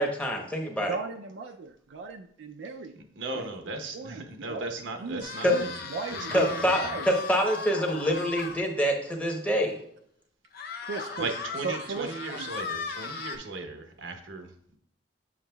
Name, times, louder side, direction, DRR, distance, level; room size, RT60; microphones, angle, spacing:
voice 1, 0.0-1.0 5.4-5.5 6.3-9.8, equal, 5° left, 2 dB, 0.8 m, -26 dB
voice 2, 0.8-2.9 3.3-3.5 3.9-4.7 5.0-7.1 10.6-11.3 11.6-12.5, right 4 dB, 70° right, 4 dB, 0.4 m, -37 dB
voice 3, 2.9-5.8 6.1-7.0 11.2-14.8, right 3 dB, 85° right, 5 dB, 0.9 m, -37 dB
sound 1, 5.2-8.6 9.1-9.2 9.5-9.6 10.5-13.4, left 5 dB, 55° left, 0.6 m, -37 dB
7.3 x 6.0 x 2.2 m, 0.69 s
head